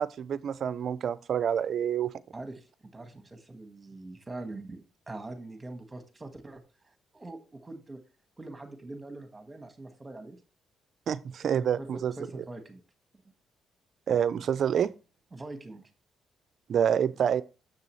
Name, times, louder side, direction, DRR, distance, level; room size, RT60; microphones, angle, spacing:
voice 1, 0.0-2.1 11.1-12.1 14.1-14.9 16.7-17.4, right 8 dB, 60° right, 0.4 m, -27 dB
voice 2, 2.3-6.6 7.1-8.0 8.4-10.4 11.6-12.8 15.3-15.9 17.1-17.2, right 2 dB, 20° right, 1.5 m, -43 dB
6.9 x 6.9 x 3.1 m
cardioid pair, 90°, 0 cm